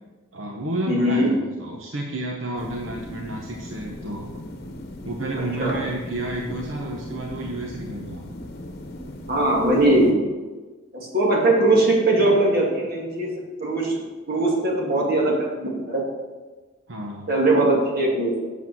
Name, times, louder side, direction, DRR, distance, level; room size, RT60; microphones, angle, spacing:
voice 1, 0.3-4.3 5.0-8.2 16.9-17.3, right 1 dB, 70° right, 1 dB, 1.0 m, -31 dB
voice 2, 0.9-1.3 5.6-5.8 9.3-10.2 10.9-14.0 14.3-16.0 17.3-18.5, right 1 dB, 45° right, -2 dB, 2.3 m, -20 dB
sound 1, 2.6-10.1, left 1 dB, 50° left, 1.0 m, -38 dB
8.5 x 7.3 x 6.2 m, 1.3 s
head